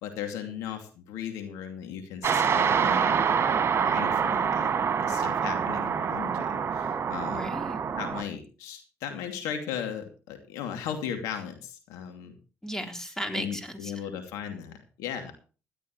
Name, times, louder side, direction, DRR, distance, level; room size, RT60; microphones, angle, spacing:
voice 1, 0.0-3.5 3.7-4.8 5.0-7.6 8.0-12.3 13.3-15.3, left 8 dB, 90° left, 6 dB, 2.6 m, -37 dB
sound 1, 2.2-8.2, right 7 dB, 50° right, 2.3 m, -26 dB
voice 2, 7.3-7.8 12.6-14.0, equal, 10° left, 5 dB, 4.0 m, -35 dB
17.5 x 12.0 x 3.2 m, 0.35 s
supercardioid pair, 70°, 6 cm